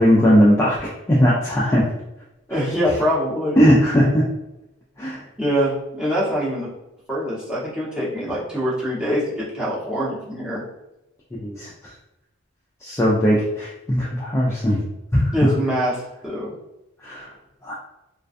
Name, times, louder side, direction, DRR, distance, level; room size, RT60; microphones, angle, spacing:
voice 1, 0.0-1.9 3.6-4.2 5.0-5.2 11.4-11.7 12.8-14.8 15.1-15.2 17.0-17.3 17.6-17.7, equal, 15° left, -6 dB, 0.3 m, -18 dB
voice 2, 2.5-3.7 5.4-6.7 7.1-10.6 15.3-16.5, equal, 5° right, -8 dB, 0.8 m, -24 dB
2.4 x 2.2 x 2.4 m, 0.92 s
head